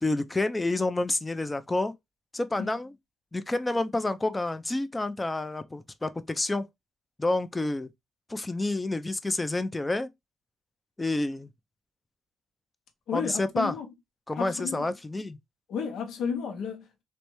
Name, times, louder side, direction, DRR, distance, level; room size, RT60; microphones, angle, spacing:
voice 1, 0.0-1.9 2.3-2.9 3.3-6.7 7.2-7.9 8.3-10.1 11.0-11.5 13.1-13.7 14.3-15.4, left 2 dB, 15° left, 0.5 m, -29 dB
voice 2, 13.1-13.9 14.4-14.9 15.7-17.0, left 6 dB, 75° left, 0.8 m, -33 dB
3.3 x 3.1 x 3.0 m
cardioid pair, 90°, 0 cm